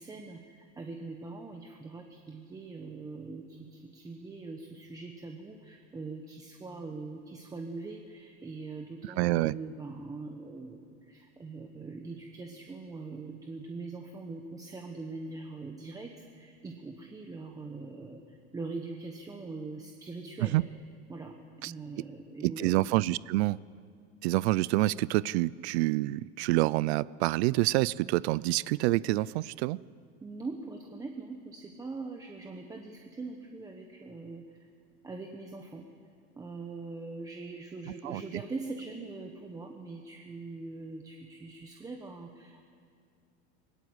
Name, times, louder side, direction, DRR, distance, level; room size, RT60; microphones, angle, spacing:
voice 1, 0.0-20.6 21.1-21.4 21.6-22.8 30.2-34.7 35.0-35.8 36.4-42.6, right 3 dB, 10° right, 3 dB, 1.0 m, -42 dB
voice 2, 9.0-9.5 20.4-20.6 21.6-21.7 22.4-23.6 24.2-29.8 38.0-38.2, right 19 dB, 90° right, 21 dB, 0.5 m, -27 dB
20.0 x 19.5 x 8.0 m, 2.2 s
cardioid pair, 160°, 32 cm